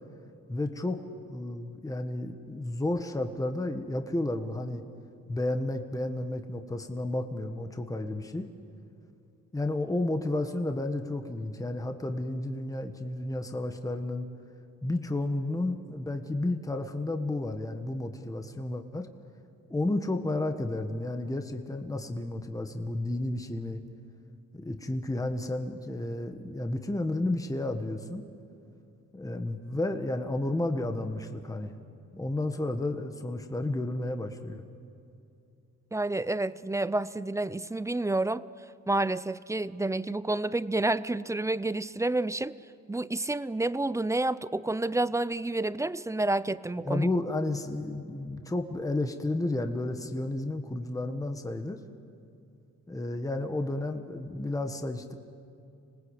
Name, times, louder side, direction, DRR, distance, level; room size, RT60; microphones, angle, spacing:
voice 1, 0.5-1.0 1.3-4.8 5.3-8.5 9.5-14.2 14.8-19.1 19.7-23.8 24.5-28.2 29.1-31.8 32.1-34.7 46.8-51.8 52.9-55.1, left 2 dB, 10° left, 6 dB, 1.5 m, -32 dB
voice 2, 35.9-38.5 38.9-42.5 42.9-47.1, right 2 dB, 10° right, 17 dB, 0.5 m, -29 dB
26.5 x 19.5 x 8.2 m, 2.5 s
cardioid pair, 90°, 30 cm